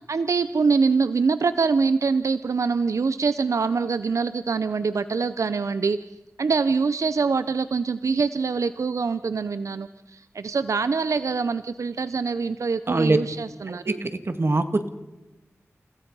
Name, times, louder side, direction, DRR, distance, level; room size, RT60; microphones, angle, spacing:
voice 1, 0.1-6.0 6.4-14.0, right 4 dB, 85° right, 13 dB, 0.6 m, -24 dB
voice 2, 12.9-13.2 13.7-14.9, right 2 dB, 50° right, 9 dB, 1.7 m, -23 dB
29.5 x 16.0 x 5.5 m, 1.1 s
wide cardioid pair, 55°, 5 cm